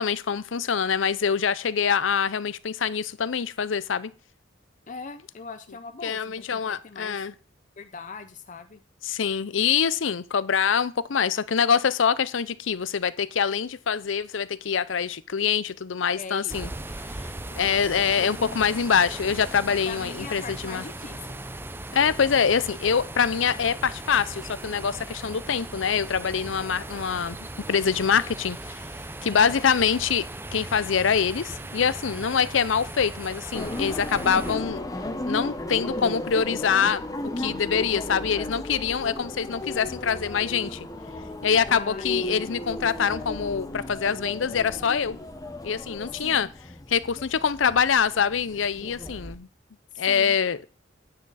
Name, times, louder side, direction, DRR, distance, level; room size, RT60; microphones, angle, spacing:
voice 1, 0.0-4.1 6.0-7.3 9.0-16.7 17.6-20.8 21.9-28.8 29.2-34.8 35.3-40.9 41.4-45.2 45.6-46.5 46.9-49.5 50.0-50.7, left 7 dB, 80° left, 0.6 m, -25 dB
voice 2, 4.9-7.2 7.8-8.8 16.2-16.6 18.2-18.6 19.8-21.4 29.3-29.6 41.7-42.5 46.1-46.5 49.9-50.4, left 4 dB, 40° left, 0.7 m, -41 dB
sound 1, 16.5-34.6, right 2 dB, 10° right, 0.5 m, -38 dB
sound 2, 33.5-49.4, left 1 dB, 20° left, 1.1 m, -35 dB
9.9 x 8.7 x 4.1 m
head